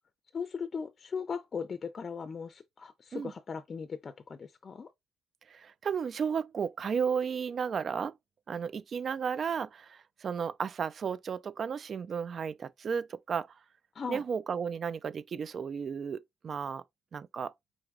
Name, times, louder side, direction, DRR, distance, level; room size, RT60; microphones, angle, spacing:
voice 1, 0.3-4.9 13.9-14.2, left 6 dB, 40° left, 0.5 m, -38 dB
voice 2, 5.5-8.1 8.5-13.5 14.1-16.8 17.1-17.5, right 6 dB, 50° right, 0.3 m, -33 dB
4.5 x 3.9 x 2.4 m
cardioid pair, 90°, 0 cm